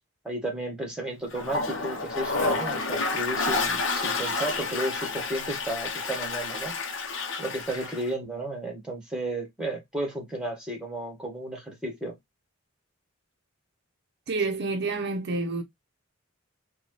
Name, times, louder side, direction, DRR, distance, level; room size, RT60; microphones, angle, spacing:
voice 1, 0.2-6.8 7.4-12.2, right 1 dB, 5° right, 1.2 m, -33 dB
Toilet flush, 1.3-8.1, left 3 dB, 65° left, 0.8 m, -29 dB
voice 2, 14.3-15.6, right 3 dB, 55° right, 0.6 m, -28 dB
4.0 x 2.3 x 3.1 m
head